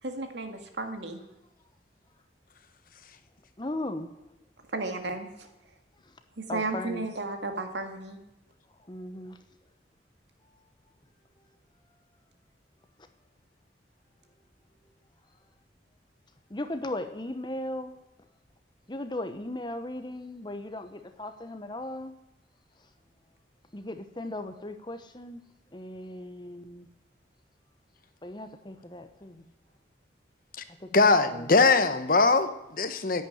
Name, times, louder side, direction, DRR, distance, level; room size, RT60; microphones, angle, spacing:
voice 1, 0.0-1.2 4.7-5.5 6.4-8.2, right 3 dB, 75° right, 6 dB, 2.0 m, -34 dB
voice 2, 3.6-4.1 6.5-7.1 8.9-9.4 16.5-17.9 18.9-22.1 23.7-25.4 25.7-26.9 28.2-29.4 30.8-31.3, left 1 dB, 25° left, 9 dB, 1.0 m, -37 dB
voice 3, 30.9-33.2, left 3 dB, 50° left, 10 dB, 1.0 m, -22 dB
10.5 x 9.2 x 9.9 m, 0.93 s
head